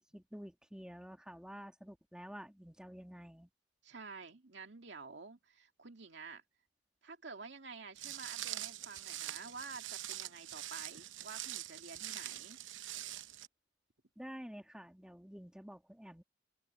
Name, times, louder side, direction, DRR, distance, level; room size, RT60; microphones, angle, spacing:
voice 1, 0.0-3.5 14.2-16.2, equal, 5° right, 2.1 m, -50 dB
voice 2, 3.8-6.4 7.0-12.6, right 4 dB, 65° right, 2.4 m, -50 dB
Walk footsteps, 8.0-13.5, right 13 dB, 80° right, 0.8 m, -44 dB
head